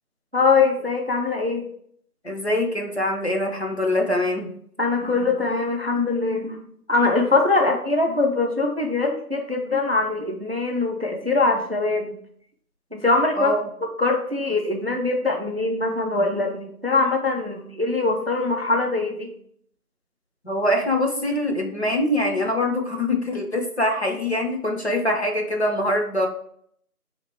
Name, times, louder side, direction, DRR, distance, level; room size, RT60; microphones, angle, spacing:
voice 1, 0.3-1.7 4.8-6.6 6.9-12.2 12.9-13.5 13.8-19.3, left 3 dB, 45° right, 3 dB, 0.4 m, -22 dB
voice 2, 2.2-4.5 13.4-13.6 20.4-26.3, left 1 dB, 45° left, 1 dB, 0.6 m, -23 dB
3.6 x 2.9 x 4.4 m, 0.66 s
figure-of-eight pair, 170°, 46 cm